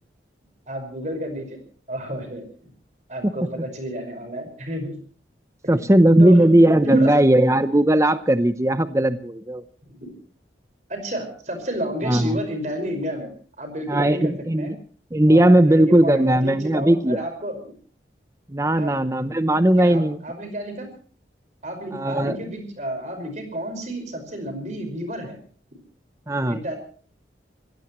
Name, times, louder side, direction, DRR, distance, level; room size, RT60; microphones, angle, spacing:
voice 1, 0.7-1.6 1.9-2.7 3.1-4.9 5.6-5.9 6.2-7.1 9.8-10.1 10.9-13.3 13.6-14.7 15.3-17.7 18.8-18.9 19.8-20.9 21.6-25.4 26.5-26.8, equal, 40° right, 6 dB, 5.4 m, -31 dB
voice 2, 5.7-9.6 12.0-12.3 13.9-14.8 15.1-17.2 18.5-20.2 21.9-22.4 26.3-26.6, right 1 dB, 15° right, 11 dB, 0.7 m, -17 dB
26.5 x 16.5 x 3.1 m, 0.44 s
head